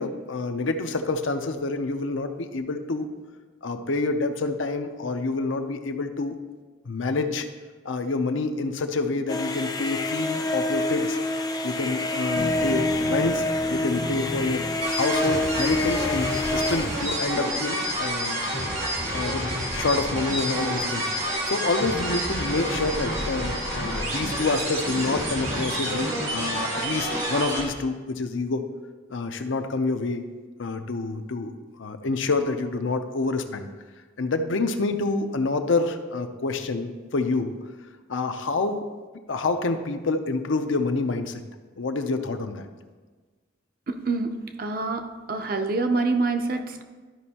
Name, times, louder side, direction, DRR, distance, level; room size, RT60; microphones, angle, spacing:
voice 1, 0.0-3.1 3.6-6.4 6.9-7.5 7.8-11.2 11.6-13.4 13.7-18.4 19.1-21.1 21.4-28.6 29.1-30.2 30.6-31.5 31.8-33.7 34.2-37.5 38.1-38.8 39.3-41.4 41.8-42.7, left 3 dB, 75° left, 7 dB, 0.6 m, -27 dB
sound 1, 9.3-17.3, left 2 dB, 20° left, 0.4 m, -27 dB
sound 2, 12.3-27.7, equal, 90° right, 2.3 m, -29 dB
voice 2, 43.9-46.8, right 3 dB, 45° right, 6 dB, 0.6 m, -26 dB
13.0 x 5.3 x 2.9 m, 1.4 s
head